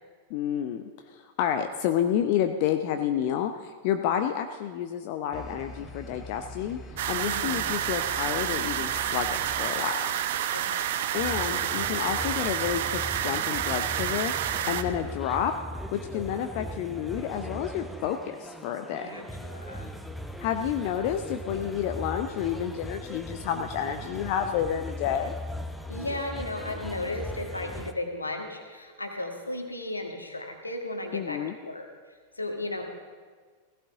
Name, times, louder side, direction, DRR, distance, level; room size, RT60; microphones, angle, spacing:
voice 1, 0.3-6.8 7.1-10.1 11.1-15.6 15.9-19.1 20.4-25.3 31.1-31.5, left 9 dB, 45° left, 7 dB, 0.7 m, -30 dB
sound 1, 5.3-9.7, left 1 dB, 15° left, 1.3 m, -43 dB
sound 2, 7.0-14.8, right 10 dB, 55° right, 0.7 m, -29 dB
voice 2, 7.2-7.6 10.5-10.9 14.7-15.0 19.0-19.9 25.9-31.9 32.4-32.8, left 2 dB, 80° left, 3 dB, 1.8 m, -35 dB
sound 3, 11.2-27.9, equal, ahead, 0.9 m, -39 dB
17.0 x 15.5 x 3.7 m, 1.6 s
figure-of-eight pair, 90°, 0 cm